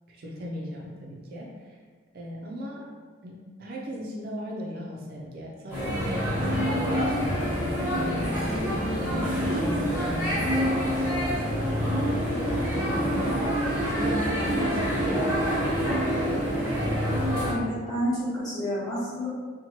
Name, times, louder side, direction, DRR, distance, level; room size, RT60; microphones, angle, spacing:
voice 1, 0.1-1.8 2.1-2.9 3.2-10.8 11.2-11.8 12.2-13.5 13.9-16.1, equal, 45° right, -2 dB, 0.3 m, -38 dB
sound 1, 5.7-17.5, equal, 10° right, 0.8 m, -26 dB
voice 2, 17.1-19.3, equal, 20° left, -10 dB, 0.9 m, -30 dB
2.9 x 2.1 x 2.7 m, 1.5 s
head